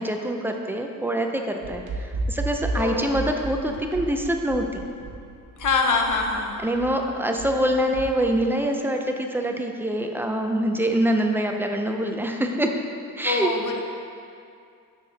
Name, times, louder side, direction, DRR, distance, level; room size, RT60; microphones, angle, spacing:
voice 1, 0.0-4.7 6.6-12.7 13.2-13.5, right 1 dB, 5° right, 3 dB, 0.4 m, -25 dB
sound 1, 1.6-8.4, right 2 dB, 90° right, 1.0 m, -33 dB
voice 2, 2.7-3.3 5.6-6.6 13.2-13.8, left 4 dB, 60° left, 3 dB, 0.8 m, -24 dB
6.8 x 6.5 x 4.0 m, 2.4 s
wide cardioid pair, 160°, 35 cm